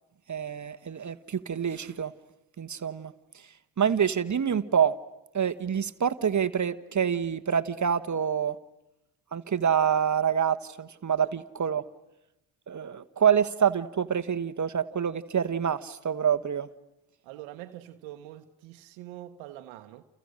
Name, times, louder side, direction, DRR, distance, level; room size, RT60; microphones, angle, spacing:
voice 1, 0.3-2.1 2.6-3.1 3.8-4.9 5.3-8.6 9.3-11.8 12.7-16.7, right 8 dB, 40° right, 1.4 m, -26 dB
voice 2, 17.2-20.0, right 13 dB, 90° right, 1.2 m, -44 dB
29.5 x 29.5 x 6.5 m
supercardioid pair, 60°, 45 cm